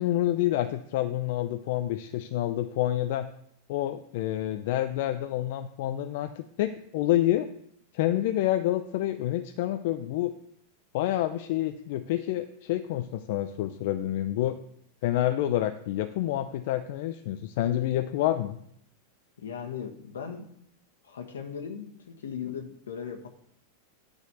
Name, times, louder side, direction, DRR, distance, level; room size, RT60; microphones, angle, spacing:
voice 1, 0.0-3.3 3.7-7.5 7.9-10.3 10.9-14.6 15.0-18.6, left 13 dB, 60° left, 9 dB, 0.5 m, -28 dB
voice 2, 19.4-20.5 21.0-23.3, left 7 dB, 80° left, 4 dB, 1.5 m, -38 dB
9.8 x 4.1 x 6.8 m, 0.70 s
hypercardioid pair, 100°, 0 cm